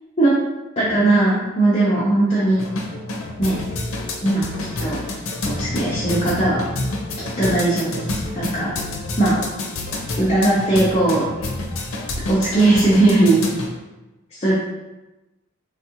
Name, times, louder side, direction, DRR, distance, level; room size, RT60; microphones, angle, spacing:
voice 1, 0.8-2.6 3.4-3.6 4.2-4.5 4.8-5.0 5.5-6.6 7.4-8.7 9.2-9.4 10.2-11.3 12.3-13.4 14.3-14.5, right 2 dB, 30° left, -7 dB, 0.5 m, -18 dB
sound 1, 2.5-13.7, left 2 dB, 80° left, 0.5 m, -28 dB
3.4 x 2.3 x 2.8 m, 1.0 s
head